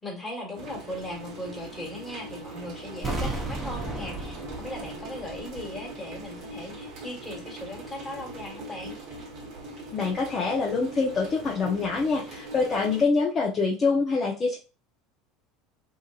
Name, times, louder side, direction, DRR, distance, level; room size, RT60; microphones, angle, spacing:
voice 1, 0.0-9.0, left 1 dB, 15° left, -1 dB, 1.4 m, -38 dB
sound 1, 0.5-13.0, right 1 dB, 55° right, 1.0 m, -41 dB
sound 2, 3.0-5.9 6.2-6.3, right 2 dB, 25° right, 1.0 m, -34 dB
voice 2, 9.9-14.6, left 4 dB, 35° left, -2 dB, 0.7 m, -25 dB
2.8 x 2.5 x 2.4 m, 0.32 s
hypercardioid pair, 75°, 0 cm